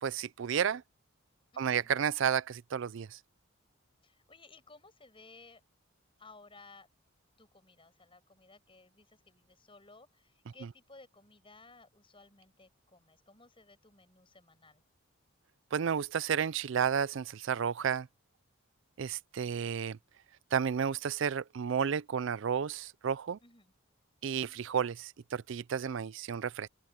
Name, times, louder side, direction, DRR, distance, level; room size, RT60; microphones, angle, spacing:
voice 1, 0.0-0.8 1.6-3.2 15.7-18.1 19.0-20.0 20.5-23.4 24.2-26.7, right 7 dB, 60° right, 0.4 m, -32 dB
voice 2, 1.5-1.9 4.0-5.6 6.2-6.9 7.4-14.8 23.4-23.7, left 3 dB, 25° left, 7.9 m, -58 dB
open air
head